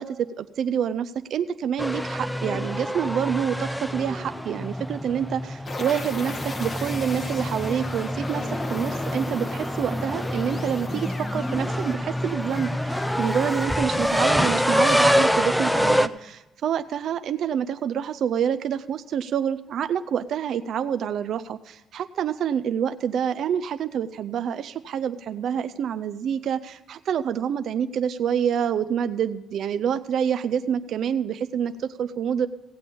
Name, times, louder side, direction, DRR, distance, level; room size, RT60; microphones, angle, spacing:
voice 1, 0.0-32.5, right 8 dB, 70° right, 10 dB, 0.4 m, -27 dB
sound 1, 1.8-16.1, equal, 5° left, 0.5 m, -26 dB
sound 2, 5.7-15.2, left 3 dB, 35° left, 1.1 m, -37 dB
16.0 x 8.4 x 5.3 m, 0.99 s
cardioid pair, 90°, 0 cm